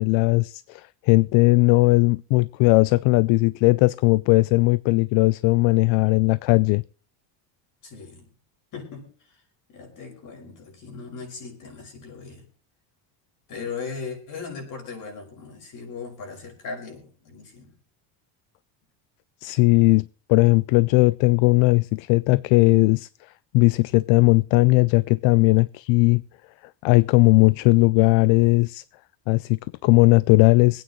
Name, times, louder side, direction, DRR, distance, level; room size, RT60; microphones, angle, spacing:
voice 1, 0.0-6.8 19.4-23.1 23.5-26.2 26.8-28.8 29.3-30.8, left 23 dB, 70° left, 0.5 m, -18 dB
voice 2, 7.8-8.3 8.7-9.4 9.7-12.4 13.5-17.7, left 5 dB, 40° left, 6.1 m, -38 dB
25.5 x 9.2 x 3.1 m
cardioid pair, 165°, 47 cm